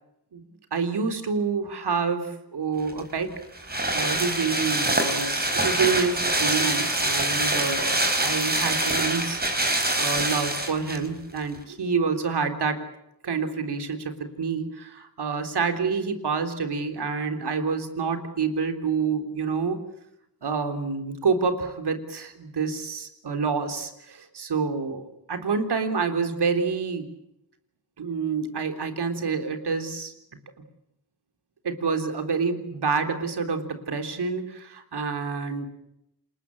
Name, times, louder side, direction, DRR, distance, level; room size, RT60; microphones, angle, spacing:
voice 1, 0.7-3.3 3.6-9.4 9.7-12.8 13.2-19.8 20.4-27.1 28.0-30.1 31.6-35.7, right 5 dB, 75° right, 7 dB, 3.6 m, -28 dB
sound 1, 2.9-11.1 11.4-11.5, right 1 dB, 25° right, 4.6 m, -25 dB
27.5 x 21.0 x 8.6 m, 0.81 s
cardioid pair, 70°, 40 cm